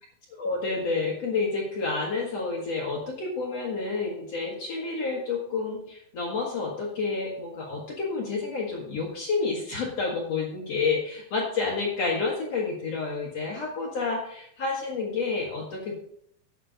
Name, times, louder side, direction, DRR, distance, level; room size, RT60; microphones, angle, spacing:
voice 1, 0.4-16.0, left 4 dB, 85° left, -4 dB, 1.4 m, -29 dB
9.9 x 6.8 x 5.1 m, 0.68 s
omnidirectional pair, 5.6 m